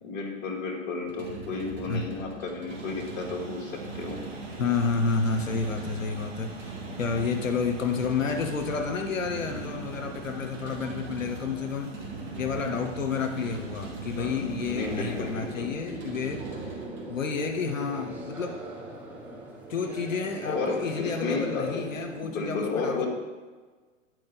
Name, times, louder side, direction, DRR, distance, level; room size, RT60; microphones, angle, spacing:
voice 1, 0.0-3.7 4.0-4.2 14.2-15.7 20.4-21.9 22.2-23.1, left 4 dB, 25° left, -2 dB, 1.1 m, -32 dB
sound 1, 1.0-17.1, right 4 dB, 30° right, 1.6 m, -42 dB
sound 2, 2.7-15.5, right 2 dB, 70° right, 1.5 m, -43 dB
voice 2, 4.6-11.9 12.4-16.5 17.1-18.6 19.7-23.1, left 5 dB, 80° left, 5 dB, 0.7 m, -30 dB
sound 3, 14.8-22.2, right 2 dB, 5° right, 0.4 m, -41 dB
8.4 x 4.4 x 3.9 m, 1.4 s
figure-of-eight pair, 105°, 38 cm